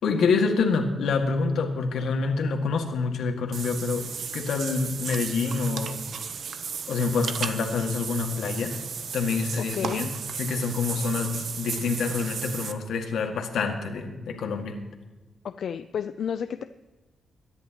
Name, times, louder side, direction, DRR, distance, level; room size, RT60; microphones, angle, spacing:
voice 1, 0.0-4.0 4.3-6.0 6.9-8.8 9.1-10.1 10.4-14.8, left 4 dB, 90° left, 3 dB, 2.0 m, -27 dB
Water / Bathtub (filling or washing), 3.5-12.7, right 6 dB, 60° right, 0.9 m, -35 dB
voice 2, 9.7-10.1 15.4-16.6, left 7 dB, 65° left, 9 dB, 0.5 m, -31 dB
22.5 x 11.0 x 3.0 m, 1.2 s
wide cardioid pair, 135°, 0 cm